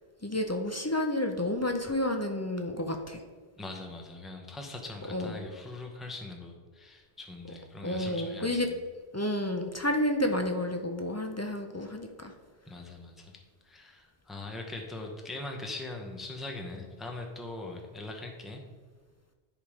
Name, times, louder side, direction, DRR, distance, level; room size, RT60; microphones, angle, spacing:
voice 1, 0.2-3.2 5.1-5.4 7.8-8.7 9.1-12.3, left 1 dB, 25° left, 4 dB, 0.3 m, -30 dB
voice 2, 3.6-8.8 12.7-13.4 13.6-18.6, left 2 dB, ahead, 2 dB, 0.7 m, -41 dB
10.5 x 3.6 x 4.9 m, 1.4 s
omnidirectional pair, 1.2 m